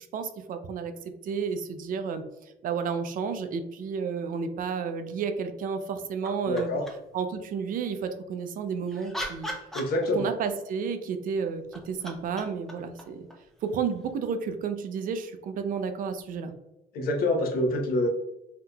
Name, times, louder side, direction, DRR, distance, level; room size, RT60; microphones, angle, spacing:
voice 1, 0.1-0.9 1.2-2.2 2.6-6.7 7.1-9.5 10.1-13.3 13.6-16.5, right 6 dB, 55° right, 8 dB, 0.4 m, -31 dB
sound 1, 6.2-7.2 8.6-10.5 11.5-14.1 16.2-16.3, equal, ahead, 0.6 m, -40 dB
voice 2, 6.5-6.9 9.7-10.3 16.9-18.1, left 1 dB, 60° left, 3 dB, 0.7 m, -26 dB
3.6 x 2.8 x 2.2 m, 0.90 s
cardioid pair, 110°, 17 cm